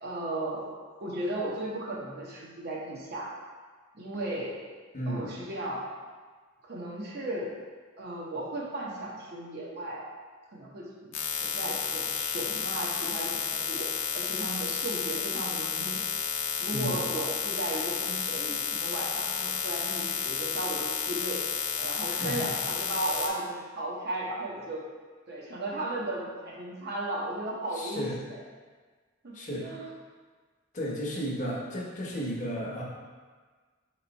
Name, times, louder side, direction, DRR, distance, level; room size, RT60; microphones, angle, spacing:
voice 1, 0.0-0.6 1.0-3.3 3.9-4.5 5.1-5.8 6.6-7.5 8.0-10.0 10.5-11.1 11.4-16.0 16.6-21.5 21.8-24.8 25.3-28.4 29.2-29.8, right 1 dB, 50° right, -4 dB, 0.8 m, -35 dB
voice 2, 4.9-5.3 16.7-17.0 22.1-22.5 27.7-28.2 29.3-29.7 30.7-32.8, equal, 35° left, -3 dB, 0.8 m, -33 dB
sound 1, 11.1-23.3, left 5 dB, 75° left, 0.6 m, -31 dB
4.3 x 3.0 x 4.0 m, 1.5 s
head